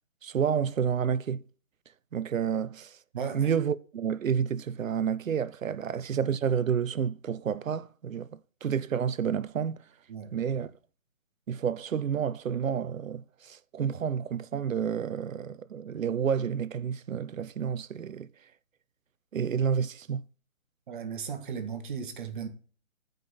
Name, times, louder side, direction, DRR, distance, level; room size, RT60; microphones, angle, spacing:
voice 1, 0.2-1.4 2.1-3.0 3.3-9.8 10.3-10.7 11.5-18.3 19.3-20.2, right 7 dB, 75° right, 0.7 m, -30 dB
voice 2, 3.1-3.5 5.7-5.8 10.1-10.7 20.9-22.5, right 6 dB, 40° right, 1.5 m, -37 dB
11.0 x 5.2 x 4.0 m
hypercardioid pair, 150°, 40 cm